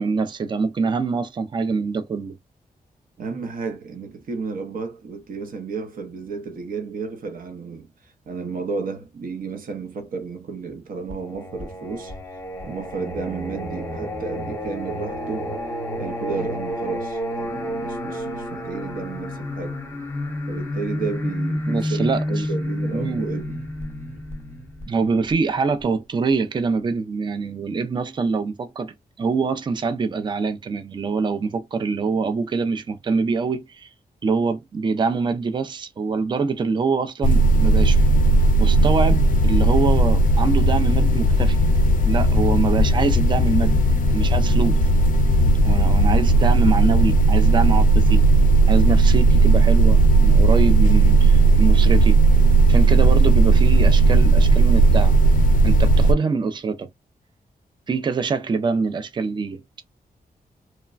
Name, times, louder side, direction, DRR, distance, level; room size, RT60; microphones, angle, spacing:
voice 1, 0.0-2.3 21.7-22.5 22.9-23.3 24.9-33.9 34.2-38.0 38.6-41.6 42.0-43.8 44.1-44.8 45.6-48.2 48.7-52.2 52.7-55.2 55.6-56.9 57.9-59.6, right 4 dB, 30° right, 0.4 m, -24 dB
voice 2, 3.2-12.1 12.6-15.6 16.0-19.8 20.5-23.6 24.2-24.3, right 4 dB, 65° right, 0.7 m, -32 dB
Singing, 11.1-25.8, equal, 15° left, 0.8 m, -30 dB
sound 1, 37.2-56.1, right 3 dB, 60° left, 0.4 m, -16 dB
3.1 x 2.1 x 2.3 m
wide cardioid pair, 150°, 16 cm